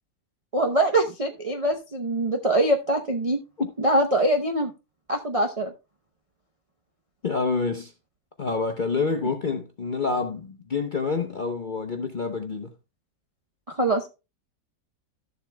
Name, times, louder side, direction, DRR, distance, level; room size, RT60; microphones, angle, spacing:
voice 1, 0.5-3.4 3.8-4.7 5.1-5.7 13.7-14.1, right 1 dB, 40° right, 0.5 m, -23 dB
voice 2, 7.2-7.9 8.4-12.7, left 4 dB, 45° left, 0.7 m, -27 dB
13.0 x 7.3 x 2.2 m
omnidirectional pair, 1.8 m